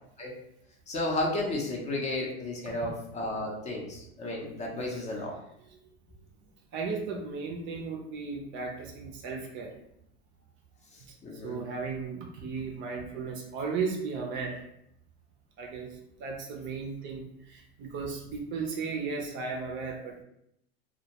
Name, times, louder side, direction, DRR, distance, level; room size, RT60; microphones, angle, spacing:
voice 1, 0.9-5.4 11.2-11.6, left 2 dB, 20° left, -1 dB, 0.5 m, -33 dB
voice 2, 6.7-9.7 11.4-14.6 15.6-20.2, right 4 dB, 40° right, 1 dB, 0.5 m, -35 dB
2.2 x 2.1 x 2.8 m, 0.76 s
supercardioid pair, 120°, 31 cm